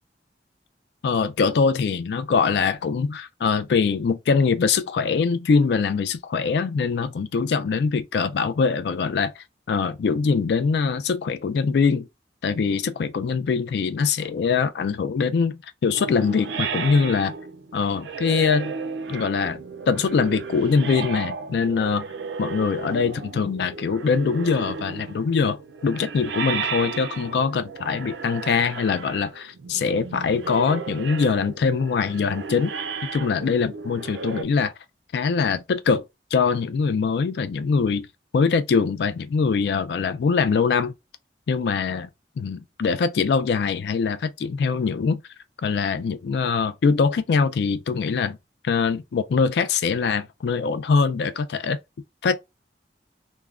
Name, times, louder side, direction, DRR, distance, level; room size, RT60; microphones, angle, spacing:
voice 1, 1.0-12.1 12.4-17.3 17.7-18.7 19.1-22.1 22.4-32.7 33.0-34.7 35.1-36.0 36.3-38.1 38.3-40.9 41.5-42.1 42.4-45.2 45.6-48.4 48.6-51.8 52.2-52.4, left 5 dB, 70° left, 0.3 m, -23 dB
sound 1, 15.9-34.4, right 5 dB, 80° right, 0.4 m, -34 dB
3.5 x 2.0 x 2.3 m
head